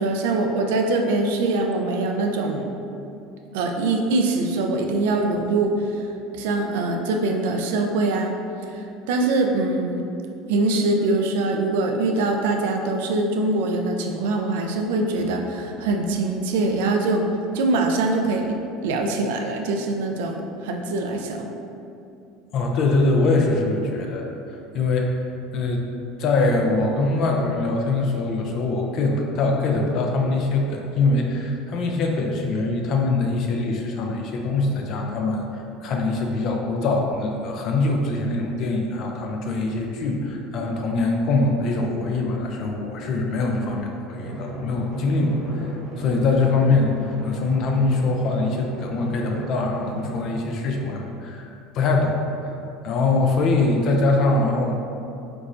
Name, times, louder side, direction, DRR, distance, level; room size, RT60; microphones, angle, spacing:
voice 1, 0.0-2.7 3.5-6.0 6.3-8.4 8.7-10.1 10.5-17.3 17.5-18.5 18.8-21.5, right 2 dB, 85° right, 3 dB, 0.4 m, -23 dB
voice 2, 22.5-25.2 25.5-25.9 26.2-52.5 52.8-54.7, left 3 dB, 50° left, 1 dB, 0.5 m, -23 dB
Drum, 44.1-50.2, right 1 dB, 45° right, 1.0 m, -34 dB
4.6 x 3.9 x 2.5 m, 2.7 s
supercardioid pair, 125°, 0 cm